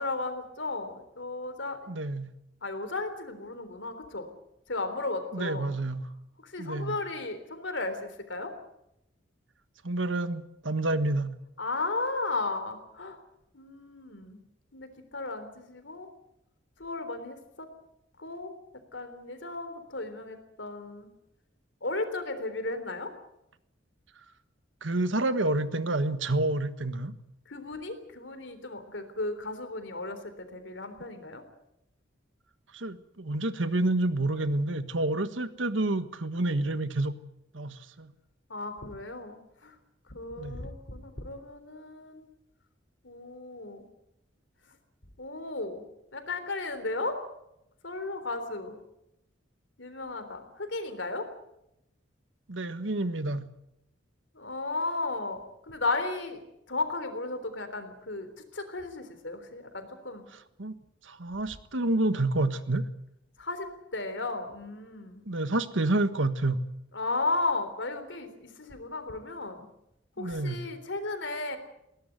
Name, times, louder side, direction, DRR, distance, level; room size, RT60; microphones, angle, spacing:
voice 1, 0.0-1.8 2.6-4.3 4.7-5.7 6.4-8.5 11.6-13.2 13.5-14.4 14.7-14.9 15.1-16.1 16.8-17.7 18.2-18.5 18.9-21.1 21.8-23.1 27.5-31.4 38.5-39.7 40.1-42.3 43.0-43.8 45.2-45.8 46.1-47.2 47.8-48.8 49.8-51.3 54.4-56.4 56.7-60.2 63.4-65.2 66.9-69.7 70.2-71.6, left 3 dB, 65° left, 9 dB, 3.6 m, -34 dB
voice 2, 1.9-2.3 5.3-6.1 6.6-7.0 9.8-11.3 24.8-27.1 32.7-37.2 37.5-38.1 40.4-40.6 52.5-53.4 60.3-60.8 61.1-62.9 65.2-66.6 70.2-70.6, right 2 dB, 75° right, 11 dB, 1.5 m, -29 dB
21.0 x 18.0 x 9.4 m, 0.84 s
head